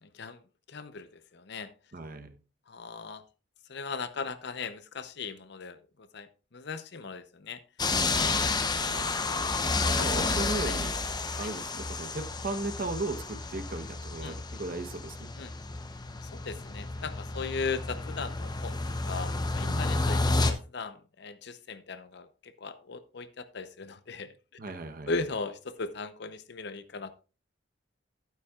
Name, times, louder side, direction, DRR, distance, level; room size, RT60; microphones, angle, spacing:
voice 1, 0.0-0.4 0.7-1.7 2.7-3.2 3.7-7.6 10.0-10.1 10.6-10.8 11.4-11.5 14.2-14.4 15.4-15.5 16.3-18.8 19.0-24.3 25.1-27.1, left 4 dB, 65° left, 12 dB, 0.7 m, -38 dB
voice 2, 1.9-2.4 7.9-9.1 9.8-11.0 11.4-15.3 19.6-20.2 24.6-25.1, right 2 dB, 50° right, 8 dB, 1.0 m, -37 dB
sound 1, 7.8-20.5, left 3 dB, 20° left, 0.7 m, -31 dB
11.5 x 9.3 x 2.4 m, 0.34 s
head